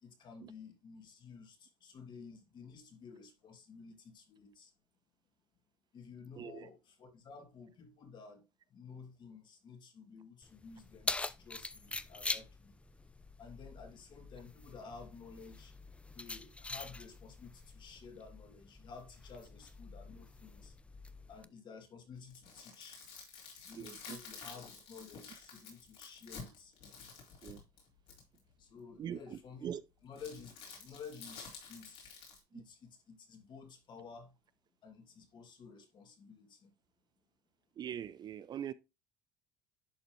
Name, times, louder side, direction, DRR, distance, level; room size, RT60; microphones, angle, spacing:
voice 1, 0.0-4.7 5.9-8.4 8.7-12.7 13.4-15.7 16.1-20.7 21.3-23.0 23.6-26.7 28.6-32.1 32.5-34.3 34.8-36.7, left 5 dB, 45° left, 2.4 m, -53 dB
voice 2, 6.4-6.7 23.7-24.2 27.4-27.6 29.0-29.8 32.5-32.6 37.8-38.7, right 9 dB, 40° right, 0.5 m, -42 dB
Keys jangling, 10.4-21.4, left 2 dB, 10° left, 0.5 m, -44 dB
sound 1, 22.1-28.4 30.2-32.4, left 5 dB, 65° left, 3.9 m, -51 dB
11.0 x 4.1 x 3.1 m
supercardioid pair, 90°, 11 cm